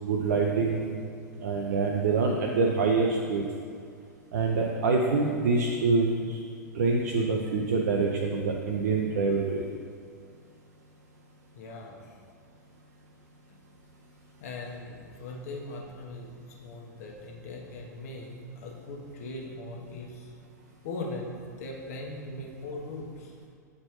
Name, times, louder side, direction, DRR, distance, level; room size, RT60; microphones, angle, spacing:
voice 1, 0.0-0.9 1.4-3.4 4.3-6.4 6.7-9.7, right 4 dB, 65° right, 0 dB, 0.6 m, -26 dB
voice 2, 11.5-12.1 13.5-13.6 14.4-20.3 20.8-23.3, left 2 dB, 60° left, -1 dB, 1.1 m, -40 dB
8.4 x 4.4 x 3.0 m, 2.2 s
figure-of-eight pair, 95°, 10 cm